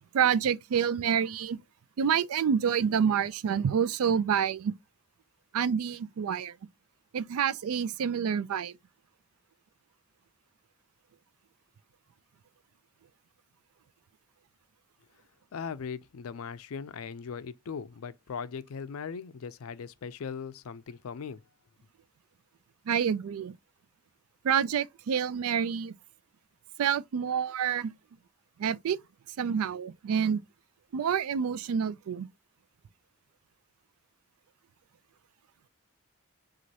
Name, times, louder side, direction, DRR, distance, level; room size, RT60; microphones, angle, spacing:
voice 1, 0.1-1.6 2.0-4.7 5.5-6.5 7.1-8.7 22.9-23.5 24.4-25.9 26.8-27.9 28.6-29.0 29.4-30.4 30.9-32.3, right 7 dB, 90° right, 0.4 m, -28 dB
voice 2, 15.5-21.4, left 6 dB, 80° left, 0.4 m, -39 dB
6.0 x 2.5 x 2.8 m
head